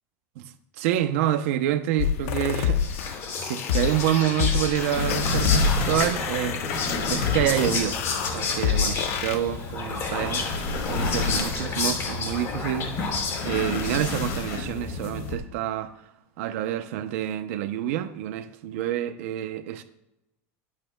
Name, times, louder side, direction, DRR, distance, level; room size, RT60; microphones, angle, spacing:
voice 1, 0.4-3.1 3.4-6.6 7.1-8.0 8.3-9.0 9.2-10.5 10.9-12.9 13.4-16.0 16.4-19.8, right 11 dB, 75° right, 0.8 m, -27 dB
sound 1, 2.0-9.4, left 9 dB, 90° left, 0.9 m, -28 dB
Whispering, 2.5-14.4, left 4 dB, 40° left, 2.9 m, -31 dB
sound 2, 4.9-15.4, left 3 dB, 60° left, 3.2 m, -30 dB
22.5 x 8.6 x 2.3 m
supercardioid pair, 155°, 8 cm